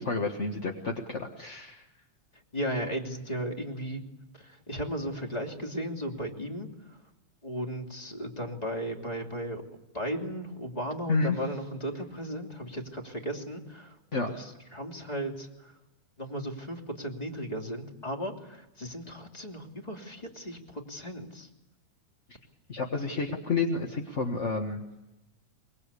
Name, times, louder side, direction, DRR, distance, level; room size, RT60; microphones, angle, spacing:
voice 1, 0.0-1.8 11.1-11.4 14.1-14.3 22.7-24.8, left 4 dB, 35° left, 2 dB, 1.1 m, -30 dB
voice 2, 2.3-4.0 4.3-7.0 7.4-9.6 9.9-15.8 16.2-21.5, equal, 15° left, 2 dB, 2.7 m, -36 dB
24.0 x 23.0 x 8.4 m, 0.93 s
omnidirectional pair, 3.5 m